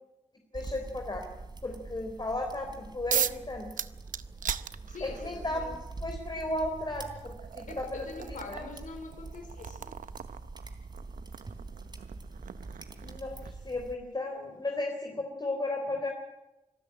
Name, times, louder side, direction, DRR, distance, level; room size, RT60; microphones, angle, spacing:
voice 1, 0.5-1.3 1.6-3.7 5.0-5.6 6.0-8.7 13.0-16.1, left 2 dB, 35° left, 3 dB, 3.8 m, -35 dB
sound 1, 0.5-14.0, right 3 dB, 35° right, 3.3 m, -44 dB
sound 2, 3.1-3.4 3.8-5.3 6.4-6.5 7.1-13.7, right 9 dB, 90° right, 0.8 m, -37 dB
voice 2, 4.9-5.8 7.7-9.9, left 4 dB, 80° left, 7 dB, 4.2 m, -44 dB
26.0 x 13.0 x 9.0 m, 0.97 s
cardioid pair, 75°, 13 cm